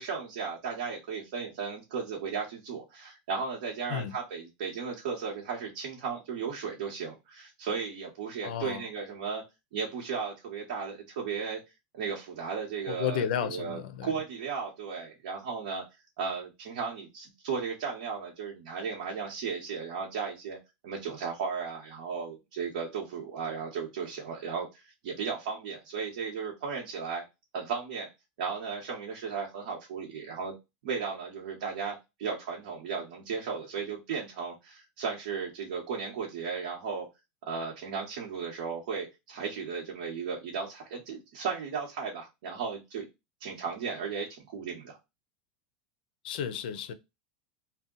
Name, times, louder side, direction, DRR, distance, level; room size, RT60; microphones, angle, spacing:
voice 1, 0.0-9.4 9.7-11.6 11.9-15.8 16.2-20.6 20.8-27.2 27.5-28.1 28.4-30.5 30.8-37.1 37.4-43.0 43.4-45.0, right 5 dB, 70° right, 1.0 m, -35 dB
voice 2, 8.4-8.9 12.9-14.1 46.2-46.9, left 9 dB, 80° left, 0.5 m, -32 dB
2.7 x 2.2 x 3.7 m
supercardioid pair, 155°, 5 cm